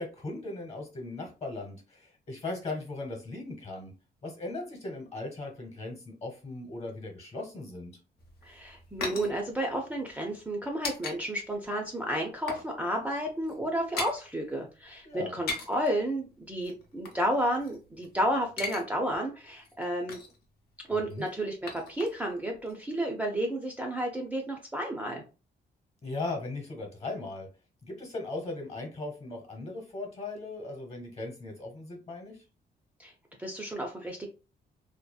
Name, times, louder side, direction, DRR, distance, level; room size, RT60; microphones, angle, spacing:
voice 1, 0.0-3.9 4.2-7.9 15.0-15.3 21.1-21.3 26.0-27.5 27.8-32.4, left 2 dB, 40° left, 2 dB, 1.1 m, -38 dB
sound 1, 8.2-11.2 11.5-11.7 12.0-12.7 13.0-13.1 13.4-14.2 15.2-15.9 16.6-18.1 18.4-18.8 19.1-19.2 19.6-20.4 21.1-22.4 22.7-22.8, left 3 dB, 65° left, 0.7 m, -39 dB
voice 2, 8.4-20.2 20.9-25.2 33.0-33.1 33.4-34.3, right 1 dB, 10° right, -1 dB, 0.4 m, -32 dB
2.7 x 2.3 x 2.2 m, 0.32 s
cardioid pair, 125°, 17 cm